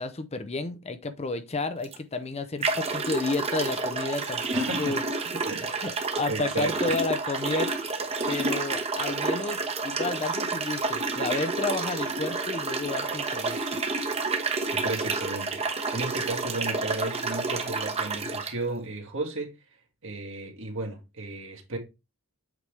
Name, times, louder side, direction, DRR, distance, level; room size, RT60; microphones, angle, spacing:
voice 1, 0.0-5.0 5.3-5.4 5.8-7.7 8.3-13.8, left 3 dB, 30° left, 0.6 m, -31 dB
sound 1, 1.8-2.0 2.6-18.5, right 3 dB, 30° right, 1.1 m, -29 dB
voice 2, 4.5-5.0 5.4-5.7 6.3-6.8 14.7-15.6 15.9-19.6 20.0-21.8, right 2 dB, 60° right, 1.9 m, -34 dB
8.1 x 5.1 x 3.3 m
head